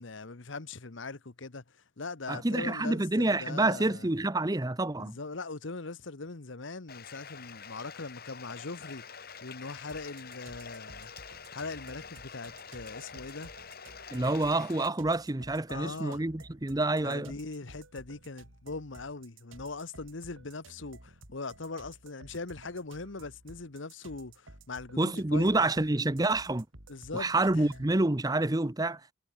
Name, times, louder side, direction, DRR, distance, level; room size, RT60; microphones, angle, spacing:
voice 1, 0.0-4.1 5.0-9.0 9.4-11.1 11.5-13.5 15.7-16.2 17.0-25.5 26.9-27.8, left 3 dB, 70° left, 1.2 m, -41 dB
voice 2, 2.3-5.2 14.1-17.4 25.0-26.7 27.1-29.1, right 2 dB, 20° right, 0.8 m, -28 dB
Bathtub (filling or washing), 6.9-14.9, left 6 dB, 50° left, 5.1 m, -47 dB
sound 1, 9.9-28.0, right 2 dB, 80° right, 5.1 m, -54 dB
head